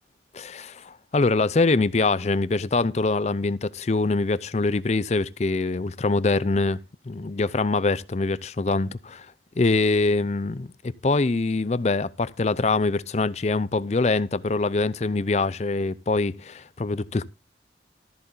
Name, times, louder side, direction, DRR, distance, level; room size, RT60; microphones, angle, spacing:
voice 1, 0.3-6.8 7.1-9.3 9.6-10.7 11.0-17.3, left 3 dB, 35° left, 0.5 m, -24 dB
13.5 x 8.0 x 3.8 m
head